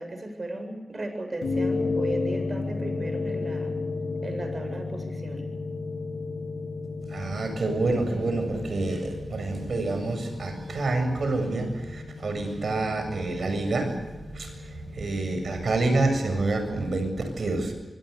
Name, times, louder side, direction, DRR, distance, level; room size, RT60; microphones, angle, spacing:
voice 1, 0.0-3.7 4.2-5.5, right 2 dB, 45° right, 6 dB, 7.7 m, -36 dB
sound 1, 1.4-16.0, left 3 dB, 90° left, 3.3 m, -33 dB
voice 2, 7.1-14.0 14.3-17.7, right 2 dB, 70° right, 7 dB, 7.6 m, -28 dB
25.0 x 24.0 x 7.0 m, 1.1 s
wide cardioid pair, 65°, 0 cm